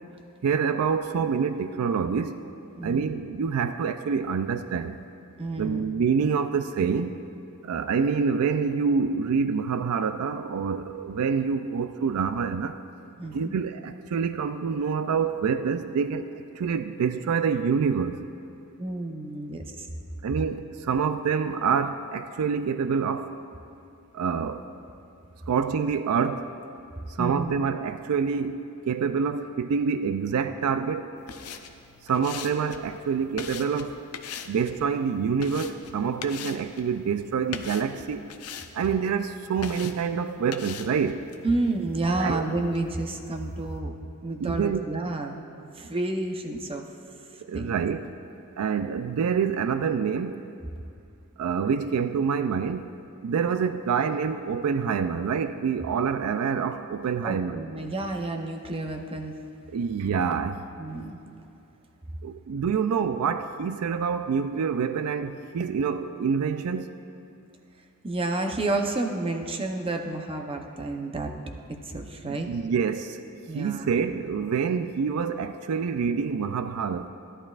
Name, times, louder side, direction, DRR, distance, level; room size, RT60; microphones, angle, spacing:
voice 1, 0.4-2.4 2.8-5.0 5.6-7.1 7.6-12.8 13.3-18.2 20.2-23.3 24.1-24.7 25.5-26.5 27.2-31.1 32.0-34.0 34.5-38.2 38.7-41.3 42.2-42.5 44.4-44.9 47.4-48.1 48.6-50.5 51.4-52.9 53.2-57.6 59.7-60.6 62.2-66.9 72.3-73.2 73.5-77.1, right 6 dB, 80° right, 10 dB, 0.4 m, -27 dB
voice 2, 2.8-3.1 5.4-5.8 13.2-13.5 18.8-19.9 27.2-27.5 41.4-43.9 44.2-46.9 47.5-47.7 57.2-59.3 60.8-61.2 68.0-71.3 71.7-72.5 73.5-74.2, right 2 dB, 25° right, 3 dB, 0.7 m, -30 dB
sound 1, 31.2-43.8, left 7 dB, 85° left, 0.6 m, -43 dB
16.0 x 11.0 x 2.4 m, 2.6 s
head